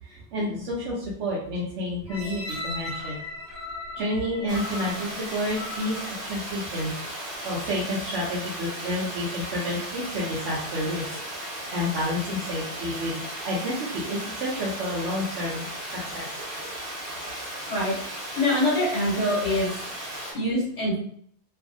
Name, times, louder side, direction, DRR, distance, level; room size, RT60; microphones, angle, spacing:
voice 1, 0.0-3.2 3.9-6.0 6.2-11.2 11.7-15.7 16.1-16.8, left 1 dB, 80° right, -5 dB, 0.9 m, -30 dB
sound 1, 2.1-7.0 7.6-7.7, left 2 dB, 20° right, 0.8 m, -38 dB
Water, 4.5-20.3, right 1 dB, 55° right, 1.1 m, -36 dB
voice 2, 18.4-19.9 20.3-21.0, left 1 dB, 80° left, -7 dB, 1.3 m, -24 dB
2.6 x 2.4 x 2.5 m, 0.64 s
omnidirectional pair, 1.2 m